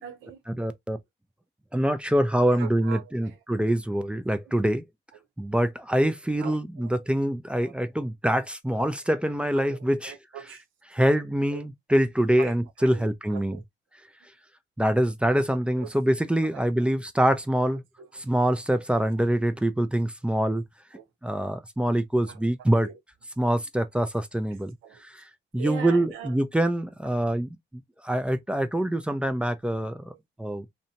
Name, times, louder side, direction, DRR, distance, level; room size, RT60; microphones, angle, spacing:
voice 1, 0.0-0.4 2.6-3.4 4.4-4.5 5.1-5.2 6.0-6.1 6.4-7.0 7.6-7.7 9.6-10.6 11.5-11.6 12.4-13.6 15.8-16.0 16.5-17.0 17.7-18.2 20.9-21.1 22.3-22.5 22.8-23.0 24.8-25.0 25.6-26.4 27.0-27.2, right 8 dB, 85° right, 0.7 m, -42 dB
voice 2, 0.6-1.0 1.7-4.8 5.4-10.1 10.9-13.6 14.8-17.8 18.2-20.6 21.2-22.9 23.4-24.7 25.0-25.2 25.5-30.1 30.4-30.7, right 1 dB, 5° right, 0.4 m, -25 dB
2.7 x 2.2 x 2.7 m
cardioid pair, 90°, 20 cm